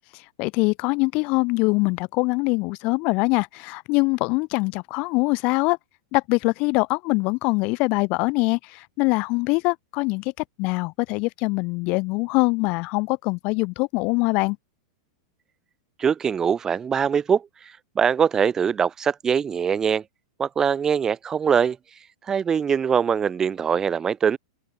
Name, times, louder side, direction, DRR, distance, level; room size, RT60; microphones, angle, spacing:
voice 1, 0.1-5.8 6.1-10.3 10.6-14.6, left 27 dB, 50° left, 2.0 m, -23 dB
voice 2, 16.0-17.4 17.9-20.0 20.4-21.8 22.3-24.4, right 7 dB, 20° right, 1.4 m, -22 dB
open air
hypercardioid pair, 115°, 3 cm